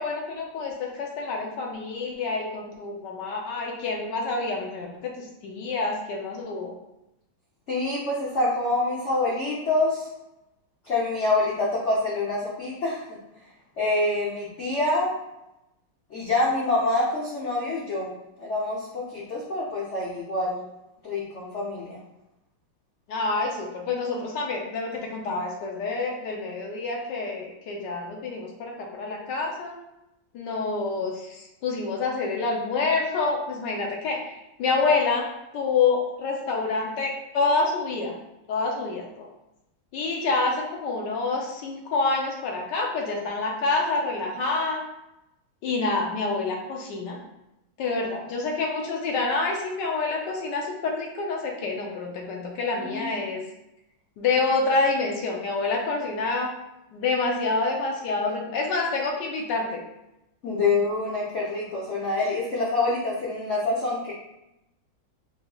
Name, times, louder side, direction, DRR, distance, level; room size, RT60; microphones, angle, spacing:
voice 1, 0.0-6.7 23.1-29.7 30.3-35.3 35.5-38.2 38.5-39.3 39.9-44.8 45.6-47.2 47.8-53.4 54.2-56.5 56.9-59.8, left 3 dB, 70° left, 0 dB, 1.1 m, -27 dB
voice 2, 7.7-10.1 10.8-13.2 13.8-15.1 16.1-18.1 18.4-20.6 21.0-22.0 52.8-53.1 60.4-64.1, left 2 dB, 85° left, -6 dB, 0.6 m, -26 dB
4.7 x 3.1 x 2.3 m, 0.89 s
omnidirectional pair, 2.3 m